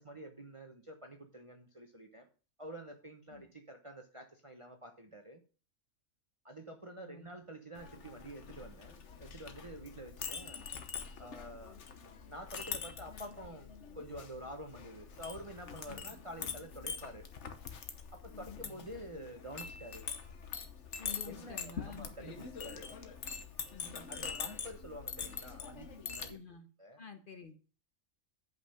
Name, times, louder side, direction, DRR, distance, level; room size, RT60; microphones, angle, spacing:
voice 1, 0.0-2.3 2.6-5.4 6.4-10.7 11.2-11.8 12.2-13.7 13.9-17.4 18.1-20.0 21.2-23.0 24.1-26.4 26.8-27.0, right 1 dB, 25° right, 4 dB, 0.9 m, -48 dB
voice 2, 7.0-7.3 15.8-16.0 18.3-18.8 21.0-22.1 23.7-24.1 26.3-26.7 27.0-27.6, left 5 dB, 40° left, 6 dB, 1.1 m, -50 dB
Chink clink, 7.7-26.3, left 6 dB, 60° left, 1.3 m, -44 dB
8.4 x 5.4 x 5.6 m, 0.36 s
omnidirectional pair, 1.4 m